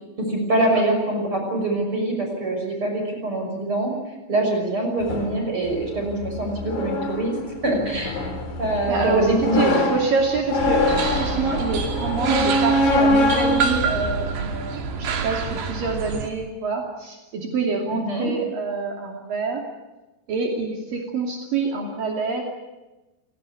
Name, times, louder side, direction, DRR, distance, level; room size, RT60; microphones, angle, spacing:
voice 1, 0.2-3.9 4.3-7.3 7.6-8.2 8.6-9.8 17.9-18.3, right 1 dB, 30° right, 2 dB, 6.8 m, -24 dB
sound 1, 5.0-15.0, left 1 dB, 50° left, 5.1 m, -25 dB
voice 2, 8.9-9.2 9.5-19.6 20.3-22.4, right 4 dB, 60° right, 1 dB, 4.3 m, -26 dB
sound 2, 10.6-16.3, right 5 dB, 85° right, 4.6 m, -27 dB
30.0 x 18.0 x 9.7 m, 1.1 s
omnidirectional pair, 4.6 m